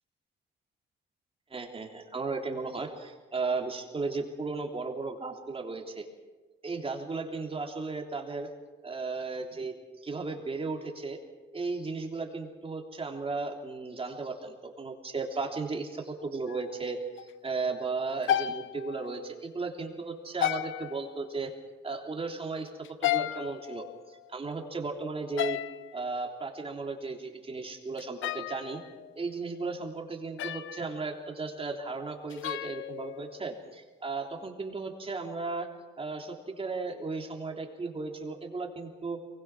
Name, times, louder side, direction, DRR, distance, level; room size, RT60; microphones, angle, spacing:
voice 1, 1.5-6.1 6.6-8.5 8.8-9.7 10.0-11.2 11.5-17.0 17.4-21.5 21.8-22.7 23.0-25.6 25.9-28.8 29.1-35.7 36.0-39.2, right 3 dB, 30° right, 2 dB, 3.4 m, -35 dB
sound 1, 16.5-16.9 17.2-17.3 18.2-19.3 20.4-21.3 22.8-24.3 25.4-26.0 28.0-29.2 30.4-31.1 32.3-33.6, left 12 dB, 80° left, 0.7 m, -33 dB
23.0 x 21.0 x 6.2 m, 1.3 s
cardioid pair, 90°, 20 cm